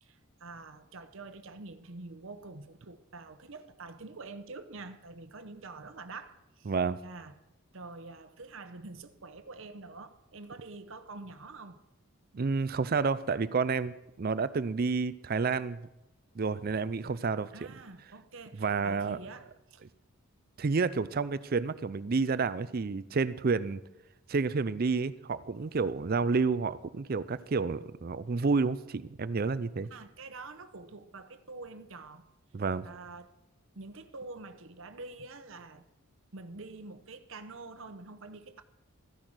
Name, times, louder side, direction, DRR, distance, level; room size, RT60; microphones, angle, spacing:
voice 1, 0.0-6.7 7.0-7.3 7.7-11.8 17.5-19.8 29.9-32.3 32.8-33.3 33.7-35.8 36.3-38.6, right 3 dB, 60° right, 0.9 m, -46 dB
voice 2, 6.7-7.0 12.3-15.8 16.4-17.5 18.6-19.2 20.6-23.8 24.3-29.9 32.5-32.9, right 4 dB, 40° right, 0.4 m, -30 dB
14.5 x 10.5 x 6.1 m
head